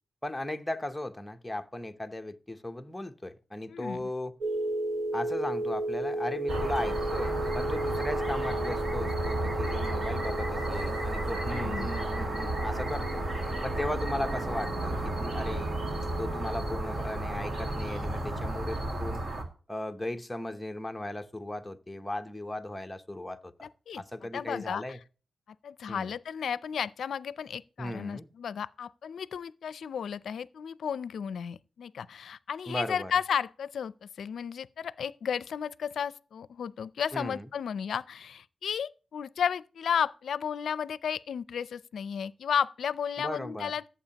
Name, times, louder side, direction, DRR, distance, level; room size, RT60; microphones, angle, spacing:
voice 1, 0.2-4.4 5.1-13.2 13.6-15.7 16.2-19.2 19.7-23.7 24.0-25.0 25.9-26.1 27.8-28.3 32.7-33.1 37.1-37.5 43.2-43.7, left 1 dB, 5° left, 0.8 m, -37 dB
voice 2, 3.7-4.1 11.5-11.9 23.6-24.0 24.3-25.0 25.6-33.9 34.2-43.9, left 7 dB, 75° left, 0.4 m, -33 dB
sound 1, 4.4-17.8, right 1 dB, 85° right, 1.1 m, -35 dB
sound 2, 6.5-19.4, right 1 dB, 50° right, 2.1 m, -33 dB
14.0 x 7.6 x 2.9 m
cardioid pair, 95°, 0 cm